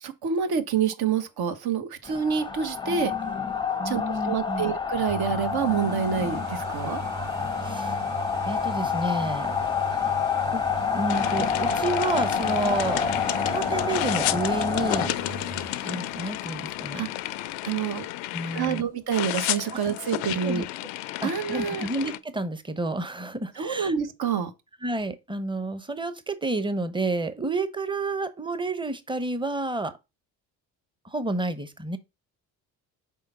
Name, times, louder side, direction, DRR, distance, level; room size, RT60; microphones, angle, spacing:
voice 1, 0.0-3.1 3.8-7.0 16.9-17.1 17.6-18.0 18.5-20.6 21.2-21.9 23.6-24.5, right 7 dB, 55° right, 1.2 m, -27 dB
sound 1, 2.1-15.1, left 6 dB, 10° left, 0.7 m, -28 dB
voice 2, 3.8-4.7 7.6-8.0 8.4-9.6 10.5-10.6 10.9-13.1 13.4-15.2 15.8-17.0 18.3-18.9 20.4-20.6 21.2-23.9 24.8-30.0 31.0-32.0, right 2 dB, 10° right, 0.9 m, -30 dB
sound 2, 5.1-18.7 19.3-19.4, right 3 dB, 35° right, 2.1 m, -40 dB
sound 3, 11.1-18.8 19.1-22.2, left 16 dB, 75° left, 0.6 m, -32 dB
4.5 x 3.7 x 5.5 m
hypercardioid pair, 55°, 47 cm